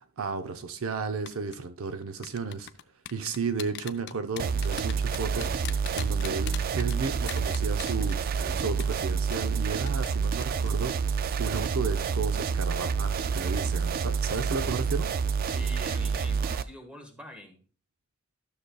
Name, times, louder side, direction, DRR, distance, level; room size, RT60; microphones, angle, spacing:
voice 1, 0.0-2.7 3.1-11.1 11.4-15.1, right 4 dB, 85° right, 0.7 m, -33 dB
sound 1, 1.3-1.6 2.2-8.5 8.8-8.9 9.3-9.4 9.9-10.1 10.4-10.7 11.0-11.2, left 11 dB, 55° left, 0.5 m, -40 dB
sound 2, 4.4-16.6, right 5 dB, 45° right, 0.3 m, -28 dB
voice 2, 15.5-17.6, left 1 dB, 5° right, 1.5 m, -45 dB
12.5 x 6.6 x 2.3 m
head